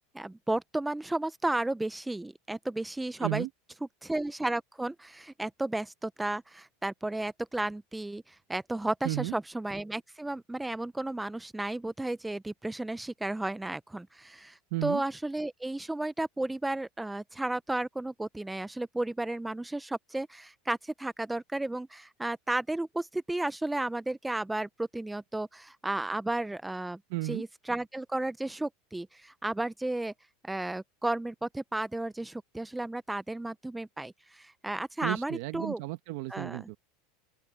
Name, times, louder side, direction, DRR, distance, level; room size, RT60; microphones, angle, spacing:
voice 1, 0.1-3.5 4.0-27.0 27.2-30.1 30.4-35.8 36.3-36.7, right 2 dB, 5° right, 0.4 m, -33 dB
voice 2, 14.7-15.0 27.1-27.4 35.0-36.8, right 19 dB, 60° right, 1.4 m, -33 dB
open air
supercardioid pair, 160°, 0 cm